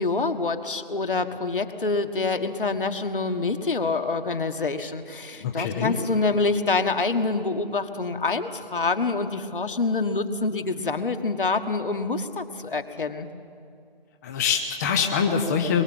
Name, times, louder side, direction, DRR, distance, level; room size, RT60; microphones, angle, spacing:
voice 1, 0.0-13.3, left 3 dB, 60° left, 7 dB, 1.7 m, -26 dB
voice 2, 5.4-6.0 14.2-15.8, left 6 dB, 15° left, 4 dB, 0.9 m, -24 dB
23.0 x 22.5 x 7.1 m, 2.3 s
figure-of-eight pair, 140°, 30 cm